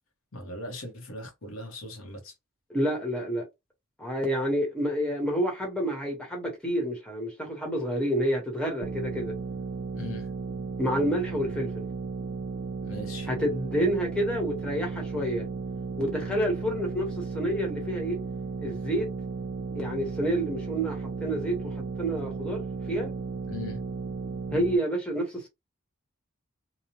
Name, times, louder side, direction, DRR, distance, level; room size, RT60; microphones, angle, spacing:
voice 1, 0.3-2.3 9.9-10.3 12.9-13.3 23.5-23.8, left 1 dB, 70° left, 0.9 m, -39 dB
voice 2, 2.7-3.5 4.0-9.4 10.8-11.9 13.3-15.5 16.0-18.2 18.6-19.1 19.7-23.1 24.5-25.5, equal, 5° left, 0.9 m, -29 dB
sound 1, 8.8-24.8, right 4 dB, 55° right, 0.5 m, -35 dB
2.8 x 2.0 x 2.9 m
head